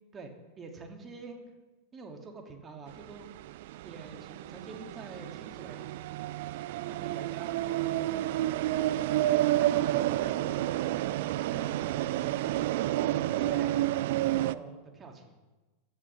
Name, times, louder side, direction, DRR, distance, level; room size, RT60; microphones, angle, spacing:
voice 1, 0.6-1.4 1.9-3.3 3.8-5.9 6.9-8.6 9.5-12.7 13.1-13.8 14.2-15.4, right 4 dB, 20° right, 2 dB, 2.6 m, -46 dB
sound 1, 2.9-14.6, right 14 dB, 50° right, 0.5 m, -30 dB
25.5 x 12.5 x 3.5 m, 1.2 s
figure-of-eight pair, 90°, 0 cm